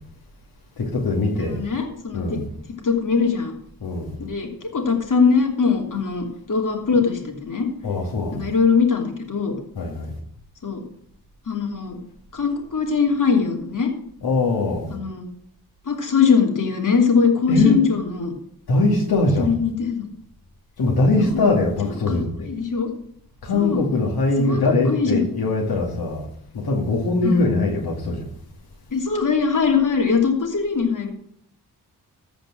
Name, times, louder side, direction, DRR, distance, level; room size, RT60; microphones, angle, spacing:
voice 1, 0.8-1.6 2.1-2.4 3.8-4.1 7.8-8.5 9.8-10.1 14.2-14.9 17.5-17.8 18.7-19.5 20.8-22.5 23.4-26.3 26.5-28.3, left 2 dB, 80° left, 2.6 m, -21 dB
voice 2, 1.3-2.4 2.8-3.5 4.2-7.7 8.3-9.5 10.6-10.8 11.5-12.0 12.3-13.9 14.9-15.3 15.8-18.3 19.4-20.1 21.2-21.4 21.8-22.2 22.4-22.9 23.5-23.8 24.5-25.2 27.2-27.5 28.9-31.1, left 5 dB, 55° left, 3.0 m, -21 dB
15.0 x 5.1 x 7.7 m
cardioid pair, 80°, 37 cm